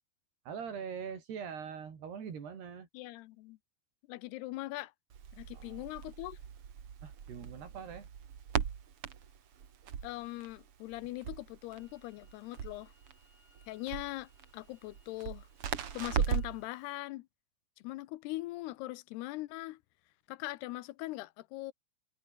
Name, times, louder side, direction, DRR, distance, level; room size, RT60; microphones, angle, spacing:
voice 1, 0.5-2.9 5.5-5.8 7.0-8.1, right 7 dB, 80° right, 6.2 m, -42 dB
voice 2, 2.9-3.6 4.1-4.9 5.4-6.4 10.0-12.9 13.7-15.5 15.9-17.3 17.8-19.8 20.3-21.7, left 18 dB, 90° left, 2.8 m, -41 dB
Crackle, 5.1-16.7, right 8 dB, 45° right, 2.2 m, -39 dB
sound 1, 11.7-16.9, left 3 dB, 50° left, 9.1 m, -70 dB
omnidirectional pair, 4.6 m